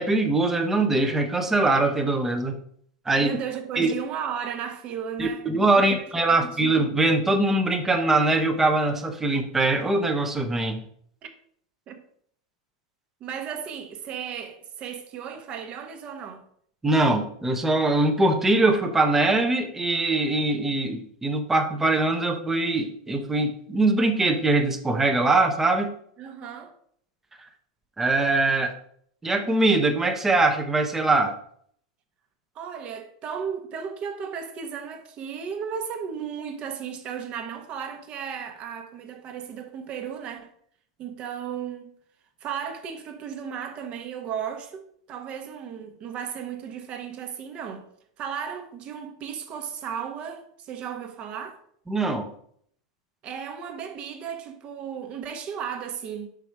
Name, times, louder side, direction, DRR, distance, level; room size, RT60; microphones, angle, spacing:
voice 1, 0.0-2.6 3.1-3.4 3.8-3.9 5.2-10.8 16.8-25.9 28.0-28.7 29.2-31.3 51.9-52.3, right 2 dB, 10° right, 0.8 m, -22 dB
voice 2, 3.2-5.5 6.0-6.5 11.2-11.3 11.9-12.0 13.2-16.4 26.2-26.7 32.5-40.5 41.0-42.0 42.4-47.9 48.2-51.6 53.2-56.3, right 7 dB, 40° right, 1.1 m, -35 dB
5.4 x 4.8 x 4.6 m
hypercardioid pair, 115°, 3 cm